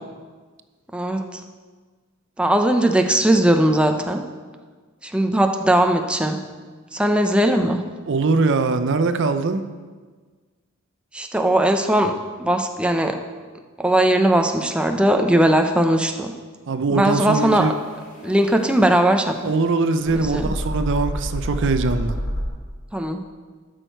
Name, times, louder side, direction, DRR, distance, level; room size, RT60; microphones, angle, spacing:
voice 1, 0.9-1.4 2.4-4.2 5.0-6.4 6.9-7.8 11.1-12.1 12.4-13.2 13.8-16.3 16.9-17.7 18.2-19.3 20.2-20.5 22.9-23.2, right 1 dB, 5° right, 5 dB, 0.5 m, -19 dB
voice 2, 8.1-9.6 16.7-17.7 19.4-22.2, right 3 dB, 60° right, 10 dB, 0.5 m, -21 dB
sound 1, 17.4-22.5, equal, 40° left, 2.4 m, -30 dB
12.0 x 6.3 x 4.5 m, 1.5 s
head